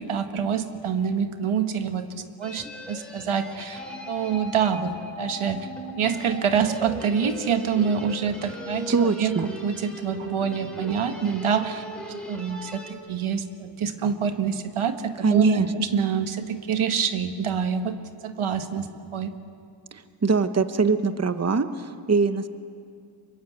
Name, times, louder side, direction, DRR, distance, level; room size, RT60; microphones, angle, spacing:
voice 1, 0.0-2.1 2.4-3.8 4.1-5.7 6.0-11.8 12.3-18.0 18.2-19.3, right 7 dB, 80° right, 8 dB, 1.5 m, -26 dB
sound 1, 2.4-12.9, left 1 dB, ahead, 4.7 m, -38 dB
voice 2, 8.9-9.4 15.2-15.7 19.9-22.5, right 4 dB, 30° right, 10 dB, 1.1 m, -22 dB
24.0 x 22.0 x 8.2 m, 2.4 s
cardioid pair, 65°, 48 cm